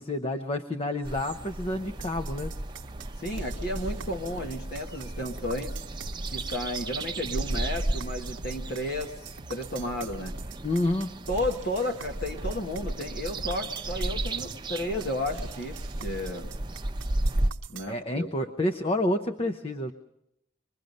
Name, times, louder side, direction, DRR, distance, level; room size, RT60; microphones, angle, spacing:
voice 1, 0.0-2.5 10.6-11.3 17.9-19.9, left 1 dB, 30° left, 8 dB, 0.7 m, -29 dB
sound 1, 1.0-17.5, right 1 dB, 25° right, 0.7 m, -34 dB
sound 2, 2.0-17.9, right 7 dB, 85° right, 0.8 m, -46 dB
voice 2, 3.2-5.8 6.3-10.4 11.3-16.5 17.7-18.3, left 1 dB, 55° left, 4 dB, 1.2 m, -33 dB
25.0 x 21.5 x 5.3 m, 0.81 s
head